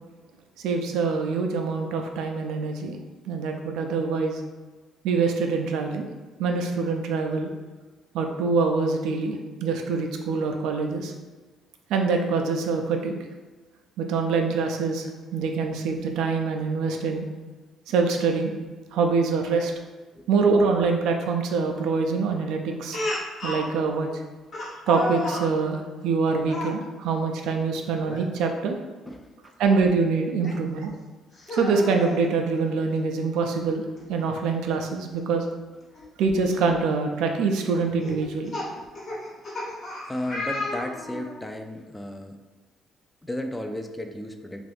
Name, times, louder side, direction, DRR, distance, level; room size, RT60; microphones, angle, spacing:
voice 1, 0.6-3.0 3.3-4.4 5.0-6.1 6.4-7.5 8.1-11.1 11.9-13.1 14.0-17.3 17.9-18.5 18.9-19.7 20.3-23.0 23.4-24.1 24.9-28.8 29.6-30.9 31.5-35.5 36.2-38.5, right 4 dB, 80° right, 3 dB, 0.4 m, -25 dB
Speech, 22.9-23.7 24.5-25.5 26.4-26.8 28.0-28.3 28.7-28.8 30.4-30.5 31.3-32.2 33.5-33.6 34.0-34.1 35.9-36.0 36.7-36.9 38.0-41.3, left 2 dB, 55° left, 1.0 m, -32 dB
voice 2, 29.0-29.5 30.4-30.6 40.1-42.4 43.2-44.7, left 1 dB, 10° left, 5 dB, 0.4 m, -34 dB
2.6 x 2.5 x 3.4 m, 1.3 s
supercardioid pair, 70°, 0 cm